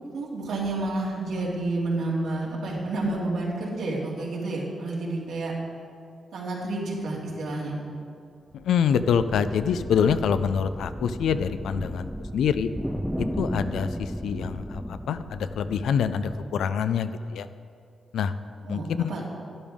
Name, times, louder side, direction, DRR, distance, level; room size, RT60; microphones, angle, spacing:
voice 1, 0.1-5.5 6.3-7.8 18.6-19.3, right 2 dB, 90° right, -4 dB, 2.3 m, -30 dB
sound 1, 8.5-17.0, equal, ahead, 0.4 m, -35 dB
voice 2, 8.6-12.1 12.3-12.7 13.2-17.5 18.1-18.3 18.7-19.1, left 7 dB, 85° left, 11 dB, 0.4 m, -25 dB
12.0 x 10.5 x 3.6 m, 2.4 s
cardioid pair, 70°, 0 cm